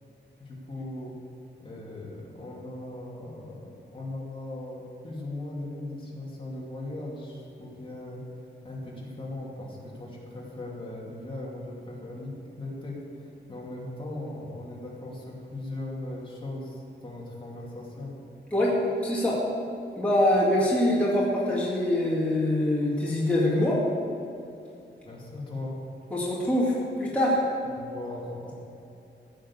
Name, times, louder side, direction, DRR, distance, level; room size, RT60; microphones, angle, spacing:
voice 1, 0.4-1.2 1.6-18.2 25.0-25.8 27.7-28.5, left 1 dB, 25° left, -4 dB, 2.6 m, -38 dB
voice 2, 19.0-19.4 20.0-23.8 26.1-27.4, left 1 dB, 5° left, -7 dB, 2.2 m, -24 dB
15.5 x 6.5 x 8.3 m, 2.7 s
wide cardioid pair, 170°, 19 cm